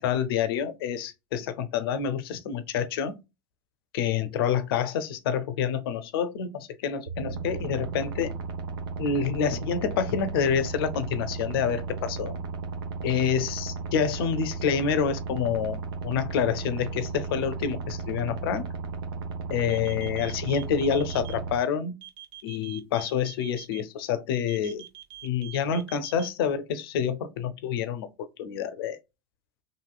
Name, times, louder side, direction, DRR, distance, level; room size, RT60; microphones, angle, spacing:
voice 1, 0.0-3.1 3.9-8.3 9.0-12.4 13.0-18.7 19.5-22.0 22.4-24.8 25.2-29.0, left 7 dB, 75° left, 0.5 m, -28 dB
sound 1, 7.1-21.6, right 4 dB, 85° right, 0.8 m, -35 dB
sound 2, 19.7-21.3 22.0-23.8 24.5-26.3, right 12 dB, 45° right, 0.6 m, -44 dB
3.0 x 2.7 x 2.2 m
hypercardioid pair, 95°, 12 cm